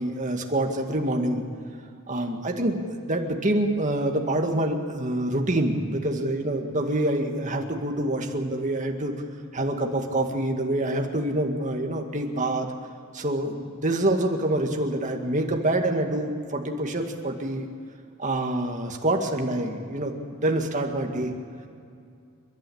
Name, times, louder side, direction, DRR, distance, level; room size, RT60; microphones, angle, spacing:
voice 1, 0.0-1.4 2.1-9.1 9.5-12.7 13.1-17.7 18.2-21.3, right 1 dB, 35° right, 3 dB, 2.1 m, -26 dB
29.0 x 11.5 x 8.8 m, 2.4 s
head